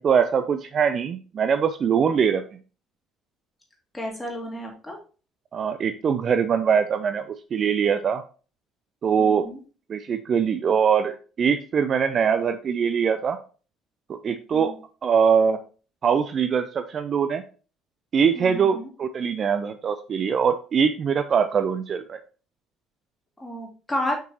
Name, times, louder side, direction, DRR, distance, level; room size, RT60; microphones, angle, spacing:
voice 1, 0.0-2.4 5.5-8.2 9.0-9.5 9.9-13.4 14.1-14.7 15.0-15.6 16.0-17.4 18.1-22.2, right 7 dB, 40° right, 9 dB, 0.4 m, -22 dB
voice 2, 3.9-5.0 9.2-9.6 14.5-14.7 18.4-18.9 23.4-24.2, equal, 10° left, 0 dB, 2.4 m, -31 dB
6.0 x 5.8 x 2.8 m, 0.36 s
figure-of-eight pair, 55°, 0 cm